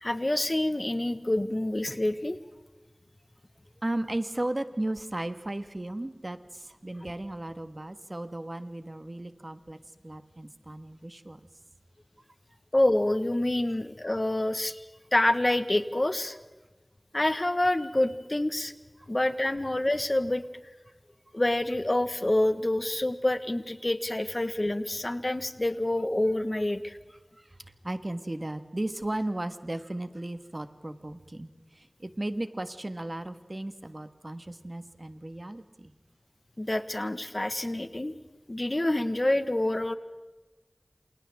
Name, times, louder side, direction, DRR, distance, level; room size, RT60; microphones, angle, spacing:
voice 1, 0.0-2.4 12.7-14.8 15.1-16.4 17.1-18.7 19.1-20.4 21.3-27.0 36.6-38.1 38.5-39.9, left 1 dB, 45° left, 10 dB, 1.4 m, -27 dB
voice 2, 3.8-9.8 10.0-11.4 13.7-13.8 19.0-19.1 27.4-35.9, right 1 dB, 50° right, 9 dB, 1.6 m, -35 dB
28.0 x 28.0 x 3.7 m, 1.2 s
wide cardioid pair, 45°, 0 cm